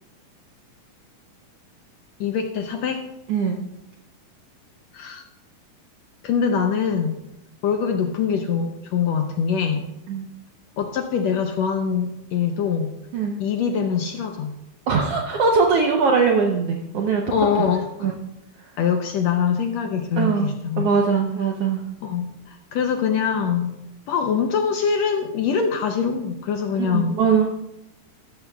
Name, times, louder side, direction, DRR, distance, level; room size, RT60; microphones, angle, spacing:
voice 1, 2.2-3.0 4.9-5.3 6.2-7.2 7.6-9.8 10.8-13.0 13.4-14.5 17.3-17.9 18.8-20.9 22.0-23.7 24.1-27.2, left 6 dB, 75° left, 5 dB, 1.7 m, -23 dB
voice 2, 14.9-17.2 18.0-18.1 20.2-21.8 26.7-27.5, right 5 dB, 70° right, 2 dB, 1.4 m, -21 dB
14.0 x 12.5 x 2.3 m, 0.87 s
omnidirectional pair, 3.7 m